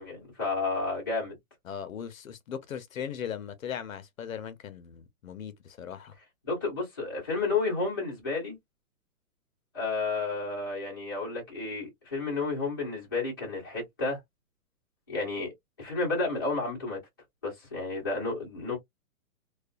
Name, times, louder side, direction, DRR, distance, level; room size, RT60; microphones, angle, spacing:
voice 1, 0.0-1.4 6.4-8.6 9.7-14.2 15.1-15.5 15.8-17.0 17.4-18.8, left 3 dB, 15° left, 0.6 m, -31 dB
voice 2, 1.6-6.1, left 8 dB, 65° left, 0.6 m, -38 dB
2.3 x 2.3 x 2.3 m
hypercardioid pair, 175°, 43 cm